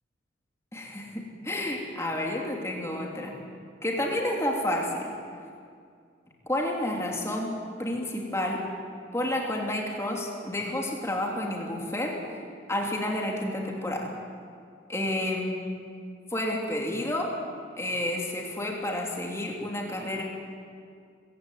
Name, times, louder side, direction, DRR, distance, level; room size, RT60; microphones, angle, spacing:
voice 1, 0.7-3.4 3.8-5.1 6.5-8.6 9.1-12.2 12.7-14.1 14.9-15.6 16.3-17.4 17.8-20.2, left 1 dB, 15° left, -1 dB, 3.2 m, -30 dB
24.5 x 16.0 x 9.3 m, 2.3 s
head